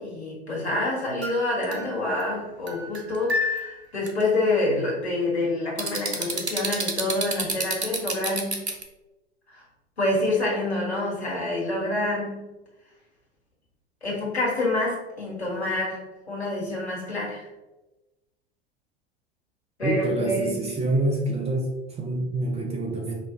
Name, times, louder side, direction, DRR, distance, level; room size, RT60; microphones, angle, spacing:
voice 1, 0.0-8.6 9.5-9.6 10.0-12.4 14.0-17.5 19.8-20.7, left 2 dB, 85° left, -5 dB, 1.4 m, -27 dB
sound 1, 1.2-2.2 2.7-3.7 4.1-4.2 5.8-8.8, right 1 dB, 90° right, 0.6 m, -28 dB
voice 2, 19.8-21.7 22.0-23.2, right 2 dB, 20° right, 0 dB, 0.8 m, -26 dB
5.4 x 2.5 x 2.6 m, 1.0 s
figure-of-eight pair, 80°, 32 cm